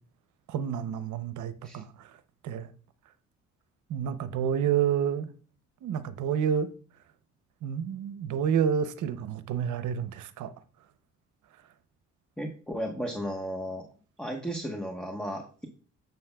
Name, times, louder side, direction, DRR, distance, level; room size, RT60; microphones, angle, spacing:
voice 1, 0.5-2.1 2.4-2.7 3.9-5.3 5.8-6.7 7.6-10.5, right 8 dB, 75° right, 0.7 m, -29 dB
voice 2, 12.4-13.8 14.2-15.7, equal, 5° left, 1.1 m, -34 dB
9.4 x 7.1 x 2.3 m
cardioid pair, 90°, 30 cm